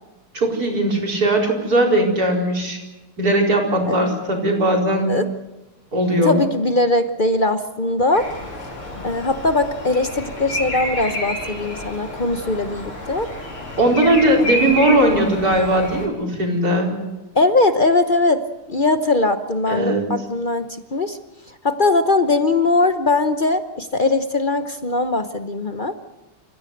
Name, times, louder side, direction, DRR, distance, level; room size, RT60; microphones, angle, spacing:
voice 1, 0.3-2.8 3.2-5.2 5.9-6.4 13.8-17.0 19.7-20.0, right 1 dB, 45° right, 1 dB, 5.0 m, -18 dB
voice 2, 6.2-8.3 8.9-13.3 14.6-14.8 17.3-18.4 18.7-21.2 21.6-26.0, left 2 dB, 55° left, 9 dB, 0.5 m, -20 dB
Bird vocalization bird call bird song, 8.1-16.1, left 1 dB, 80° left, 6.3 m, -29 dB
28.5 x 15.5 x 7.8 m, 1.1 s
omnidirectional pair, 2.3 m